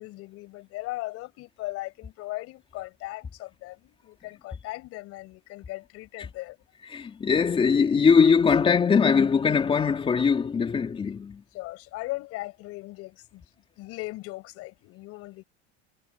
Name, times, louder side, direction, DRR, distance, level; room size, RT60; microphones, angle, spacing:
voice 1, 0.0-6.6 11.5-13.4 13.8-15.4, left 19 dB, 45° left, 7.4 m, -38 dB
voice 2, 6.9-11.4, left 6 dB, 15° left, 3.3 m, -21 dB
cardioid pair, 165°, 33 cm